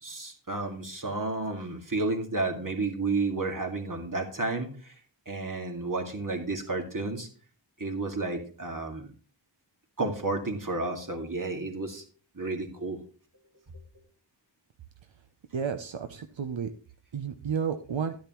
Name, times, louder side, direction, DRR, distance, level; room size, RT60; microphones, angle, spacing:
voice 1, 0.0-4.9 5.3-7.3 7.8-9.1 10.0-12.0 12.4-13.0, right 3 dB, 45° right, 3 dB, 2.1 m, -31 dB
voice 2, 15.5-16.7 17.1-18.2, right 6 dB, 85° right, 8 dB, 0.7 m, -31 dB
11.5 x 10.0 x 3.0 m, 0.38 s
wide cardioid pair, 60°, 44 cm